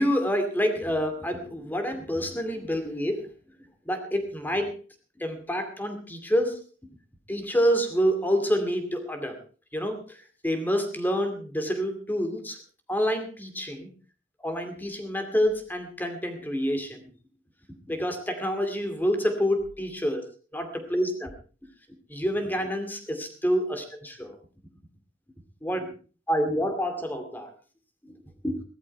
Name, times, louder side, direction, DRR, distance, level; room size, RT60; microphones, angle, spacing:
voice 1, 0.0-3.3 3.9-4.8 5.2-6.6 7.3-9.4 9.7-12.6 12.9-13.9 14.4-17.1 17.9-20.2 20.5-21.3 22.1-24.4 25.6-25.9 26.3-27.5 28.0-28.1 28.4-28.6, equal, 10° left, 6 dB, 2.4 m, -27 dB
16.5 x 13.5 x 4.6 m, 0.37 s
head